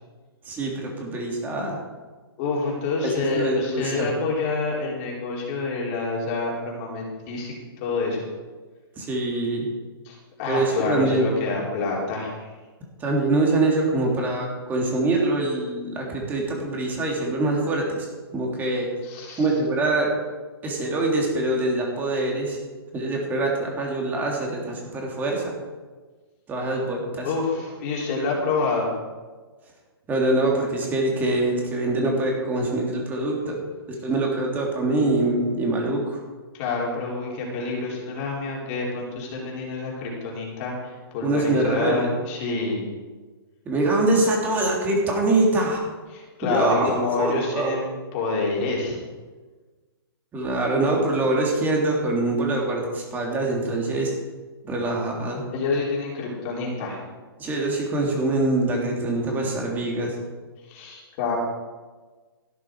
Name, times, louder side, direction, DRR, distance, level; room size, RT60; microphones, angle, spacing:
voice 1, 0.5-1.8 3.0-4.1 9.0-9.7 10.5-11.2 13.0-18.1 18.3-18.9 19.4-20.1 20.6-22.6 22.9-25.5 26.5-27.3 30.1-33.6 34.0-36.2 41.2-42.1 43.6-45.8 46.4-47.7 50.3-54.1 54.6-55.4 57.4-60.1, right 2 dB, 15° right, -1 dB, 3.1 m, -24 dB
voice 2, 2.4-8.3 10.0-12.5 19.0-19.5 27.2-28.9 36.5-42.8 46.1-49.0 55.5-57.0 60.7-61.4, left 3 dB, 35° left, -3 dB, 4.1 m, -27 dB
15.0 x 11.0 x 4.8 m, 1.3 s
hypercardioid pair, 155°, 13 cm